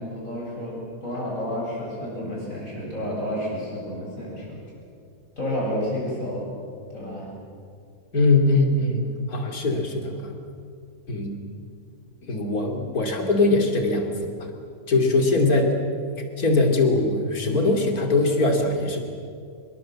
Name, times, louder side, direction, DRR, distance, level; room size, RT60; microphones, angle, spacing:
voice 1, 0.0-4.6 5.4-6.5 6.9-7.3, left 1 dB, 60° left, -4 dB, 8.4 m, -30 dB
voice 2, 8.1-10.3 11.1-11.4 12.2-14.1 14.4-14.5 14.9-15.7 16.4-19.0, left 2 dB, 80° left, 3 dB, 3.3 m, -21 dB
25.5 x 22.0 x 7.6 m, 2.3 s
omnidirectional pair, 1.6 m